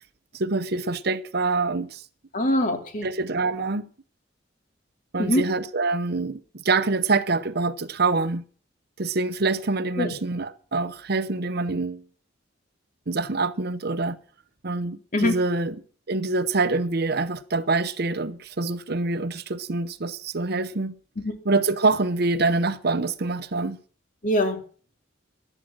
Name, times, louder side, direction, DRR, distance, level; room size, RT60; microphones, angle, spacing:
voice 1, 0.3-2.0 3.0-3.8 5.1-8.4 9.0-12.0 13.1-14.2 14.6-15.7 16.1-20.9 21.5-23.8, right 3 dB, 55° right, 0.9 m, -25 dB
voice 2, 2.3-3.1 5.2-5.4 10.0-10.1 15.1-15.4 21.2-21.3 24.2-24.6, left 1 dB, 45° left, 2.7 m, -23 dB
14.5 x 11.0 x 6.2 m
head